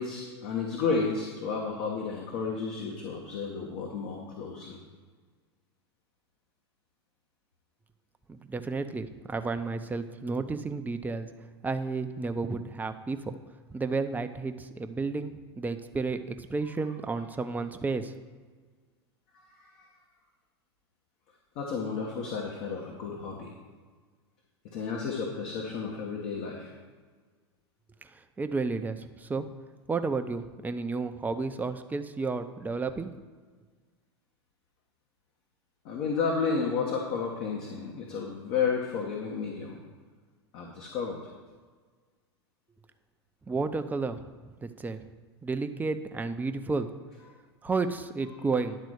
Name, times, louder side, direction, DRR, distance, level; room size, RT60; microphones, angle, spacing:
voice 1, 0.0-4.8 19.3-19.9 21.5-23.5 24.7-26.7 35.8-39.8 40.5-41.2, left 5 dB, 55° left, 0 dB, 1.4 m, -32 dB
voice 2, 8.3-11.3 11.6-13.4 13.7-18.1 28.4-29.5 29.9-33.1 43.5-44.2 44.6-45.0 45.4-46.9 47.6-48.8, right 4 dB, 10° right, 8 dB, 0.6 m, -32 dB
10.5 x 4.1 x 6.4 m, 1.5 s
hypercardioid pair, 95°, 14 cm